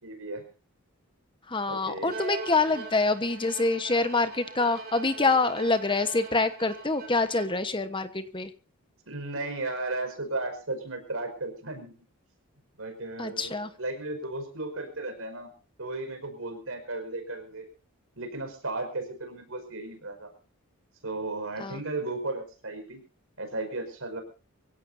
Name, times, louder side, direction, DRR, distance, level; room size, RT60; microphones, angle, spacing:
voice 1, 0.0-0.4 1.7-2.1 9.1-11.9 12.8-15.5 15.8-17.7 18.2-20.3 21.0-23.0 23.4-24.2, right 2 dB, 65° right, 6 dB, 5.3 m, -35 dB
voice 2, 1.5-8.5 13.2-13.7 21.6-21.8, left 3 dB, 20° left, 10 dB, 1.1 m, -26 dB
Bowed string instrument, 2.1-7.8, right 4 dB, 45° right, 4.1 m, -41 dB
24.5 x 16.5 x 2.7 m, 0.35 s
head